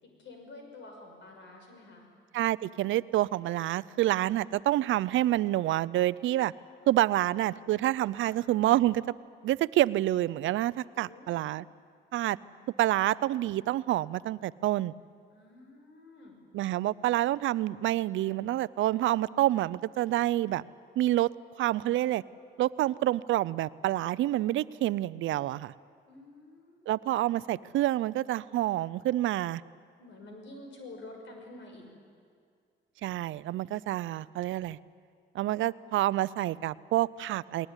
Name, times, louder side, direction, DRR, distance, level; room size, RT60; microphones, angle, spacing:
voice 1, 0.0-2.1 8.2-8.4 10.9-11.5 12.4-12.6 15.3-16.3 26.0-26.9 30.0-31.9, left 2 dB, 65° left, 2 dB, 6.1 m, -49 dB
voice 2, 2.3-6.5 6.9-9.0 9.4-11.6 12.1-12.4 12.8-14.9 16.5-20.6 21.0-21.3 21.6-22.2 22.6-25.7 26.9-29.6 33.0-34.8 35.3-37.7, right 14 dB, 75° right, 19 dB, 0.5 m, -28 dB
20.0 x 19.5 x 9.8 m, 2.2 s
cardioid pair, 90°, 20 cm